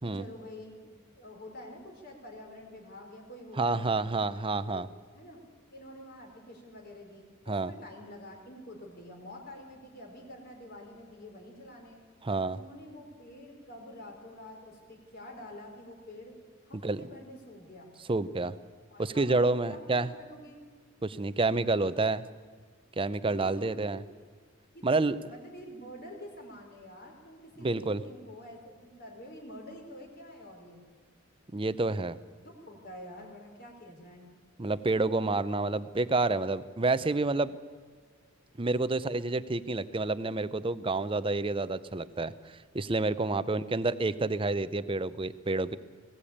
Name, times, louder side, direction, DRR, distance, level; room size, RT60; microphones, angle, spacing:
voice 1, 0.0-4.1 4.7-4.8 5.1-5.4 5.7-12.0 12.5-16.4 16.6-17.9 18.9-19.4 19.7-20.6 23.2-24.0 24.7-30.8 32.4-34.3 43.1-43.8, left 1 dB, 50° left, 1 dB, 4.3 m, -48 dB
voice 2, 3.6-4.9 7.5-7.7 12.2-12.6 16.8-17.0 18.1-18.6 19.0-20.1 21.0-22.2 23.0-24.0 24.8-25.2 27.6-28.0 31.5-32.2 34.6-37.5 38.6-45.8, right 3 dB, 25° right, 14 dB, 0.6 m, -29 dB
20.5 x 17.0 x 8.6 m, 1.5 s
head